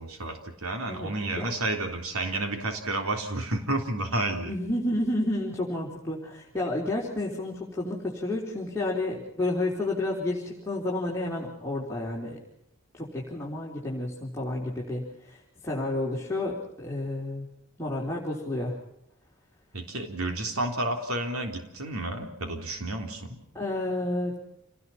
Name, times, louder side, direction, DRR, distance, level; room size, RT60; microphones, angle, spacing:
voice 1, 0.0-4.5 19.7-23.4, right 2 dB, 90° right, 4 dB, 3.6 m, -31 dB
voice 2, 4.4-12.4 12.9-17.4 17.8-18.7 23.5-24.4, left 1 dB, 15° left, -4 dB, 4.0 m, -30 dB
29.0 x 19.5 x 5.8 m, 0.79 s
head